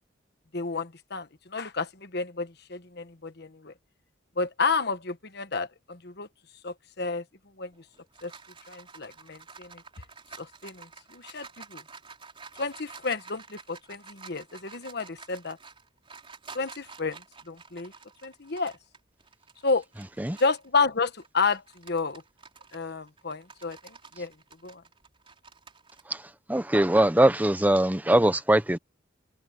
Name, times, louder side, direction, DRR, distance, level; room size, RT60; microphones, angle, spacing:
voice 1, 0.5-3.7 4.4-6.3 6.6-7.2 7.6-7.7 8.2-8.3 8.7-9.8 10.4-11.8 12.6-15.6 16.5-17.9 18.2-18.8 19.6-19.8 20.4-22.2 22.7-24.3 24.6-24.8, left 4 dB, 55° left, 1.3 m, -31 dB
sound 1, 7.7-20.7 21.1-26.0, right 5 dB, 30° right, 4.1 m, -49 dB
voice 2, 26.5-28.8, right 1 dB, 10° right, 0.8 m, -21 dB
head